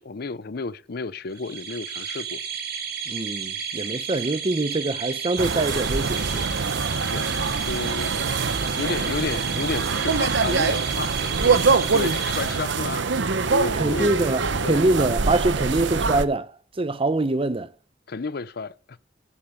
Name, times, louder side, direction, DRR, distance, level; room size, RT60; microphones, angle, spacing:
voice 1, 0.0-2.4 7.1-13.0 13.5-14.3 14.6-14.8 18.1-19.0, left 4 dB, 60° left, 0.6 m, -32 dB
sound 1, 1.3-13.2, right 7 dB, 60° right, 2.4 m, -32 dB
voice 2, 3.1-6.5 13.7-17.7, right 2 dB, 30° right, 0.7 m, -24 dB
sound 2, 5.4-16.2, right 4 dB, 80° right, 0.9 m, -24 dB
11.5 x 8.4 x 7.0 m
head